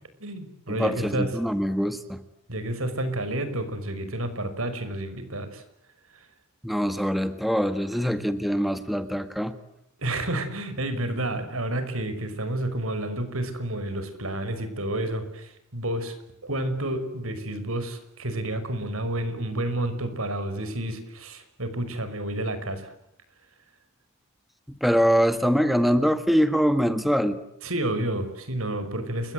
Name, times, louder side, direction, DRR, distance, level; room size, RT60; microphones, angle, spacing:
voice 1, 0.2-1.3 2.5-5.6 10.0-16.1 16.4-22.9 27.6-29.3, right 1 dB, 80° right, 10 dB, 5.8 m, -30 dB
voice 2, 0.8-2.2 6.6-9.6 24.8-27.4, equal, ahead, 10 dB, 1.6 m, -23 dB
29.5 x 23.0 x 7.9 m, 0.76 s
head